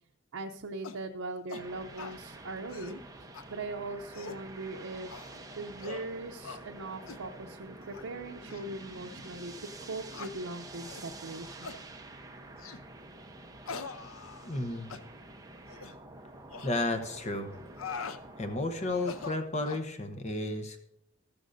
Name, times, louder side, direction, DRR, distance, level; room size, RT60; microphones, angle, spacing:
voice 1, 0.3-3.0 3.5-5.1 5.6-9.5 9.8-11.7, right 2 dB, 80° right, 2 dB, 0.6 m, -40 dB
sound 1, 0.8-1.0 1.5-1.7 2.0-2.2 2.6-3.0 3.3-3.5 3.9-4.4 5.1-5.4 5.8-6.1 6.4-6.6 7.1-7.2 7.8-8.1 8.5-8.6 9.2-9.3 10.1-10.3 10.9-11.1 11.6-11.8 12.6-12.8 13.7-14.6 14.9-15.0 15.7-16.0 16.5-16.7 17.5-18.2 18.9-19.9, left 5 dB, 80° left, 0.6 m, -43 dB
sound 2, 1.6-19.4, right 2 dB, 15° right, 0.8 m, -48 dB
voice 2, 14.4-14.9 16.6-17.5 18.4-20.8, left 2 dB, 35° left, 7 dB, 0.8 m, -32 dB
14.0 x 13.0 x 2.6 m, 0.71 s
head